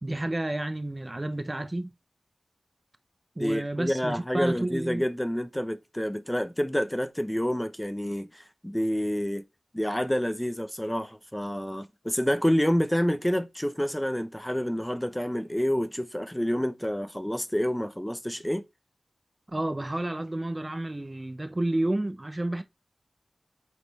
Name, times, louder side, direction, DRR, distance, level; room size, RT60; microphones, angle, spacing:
voice 1, 0.0-1.9 3.4-5.0 19.5-22.6, right 1 dB, 30° right, 0.7 m, -30 dB
voice 2, 3.4-9.4 9.7-18.6, equal, 10° left, 0.8 m, -28 dB
8.3 x 4.2 x 4.1 m
wide cardioid pair, 50°, 0 cm